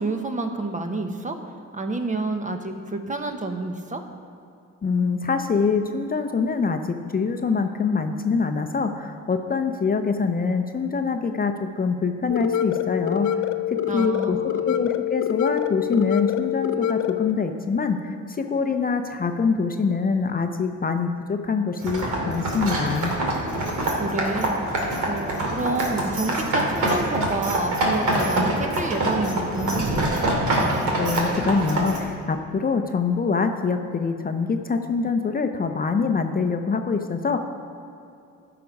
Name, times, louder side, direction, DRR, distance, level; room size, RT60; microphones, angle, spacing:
voice 1, 0.0-1.4 1.7-4.0 13.9-14.6 23.9-30.0, right 2 dB, 25° right, 5 dB, 1.0 m, -29 dB
voice 2, 4.8-13.3 13.7-14.4 14.6-23.1 31.0-37.4, left 5 dB, 30° left, 6 dB, 0.7 m, -24 dB
sound 1, 12.3-17.3, left 10 dB, 70° left, 0.6 m, -25 dB
sound 2, 21.8-32.0, right 1 dB, 75° right, 2.5 m, -25 dB
13.0 x 6.0 x 5.3 m, 2.6 s
cardioid pair, 90°, 30 cm